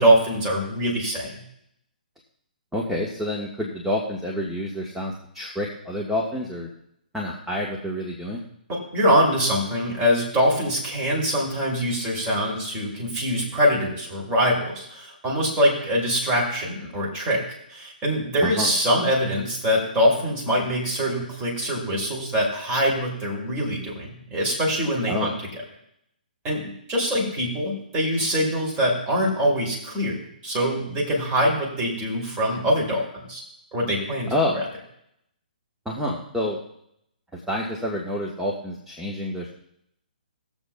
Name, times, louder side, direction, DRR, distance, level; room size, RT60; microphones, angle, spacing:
voice 1, 0.0-1.4 8.7-17.4 17.7-25.3 26.4-33.4 33.7-34.6, equal, 25° right, -3 dB, 2.9 m, -23 dB
voice 2, 2.7-6.7 7.1-8.4 18.4-18.7 25.1-25.3 34.3-34.6 35.8-36.6 37.3-39.5, left 1 dB, 5° right, -3 dB, 1.2 m, -28 dB
20.5 x 7.2 x 2.3 m, 0.75 s
figure-of-eight pair, 130°, 5 cm